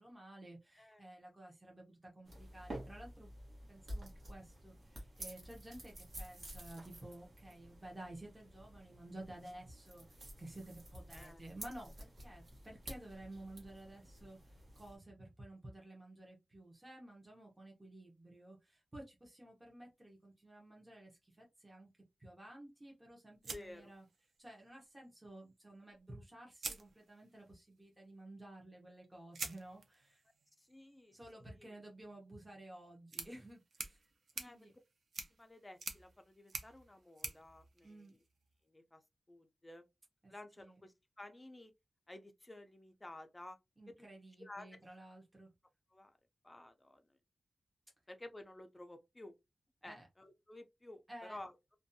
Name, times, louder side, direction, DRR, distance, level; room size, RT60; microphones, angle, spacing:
voice 1, 0.0-3.3 3.7-21.9 22.2-24.0 24.4-30.2 31.1-34.0 34.4-34.8 37.8-38.1 40.2-40.8 43.8-45.5 49.8-50.1 51.1-51.4, right 1 dB, 15° right, 0.8 m, -53 dB
voice 2, 0.8-1.1 11.1-11.4 23.5-23.9 30.6-31.7 34.4-34.7 35.3-38.2 38.6-39.0 39.3-39.8 40.3-41.7 42.1-43.6 43.9-44.1 44.4-44.8 45.9-46.2 46.4-47.0 48.1-49.3 49.8-51.6, left 1 dB, 20° left, 0.4 m, -53 dB
sound 1, 2.3-15.0, right 1 dB, 55° right, 1.1 m, -51 dB
sound 2, 23.4-24.6 25.9-26.0 26.5-27.5 29.3-38.5, right 4 dB, 80° right, 0.5 m, -49 dB
2.5 x 2.2 x 2.6 m
wide cardioid pair, 150°, 0 cm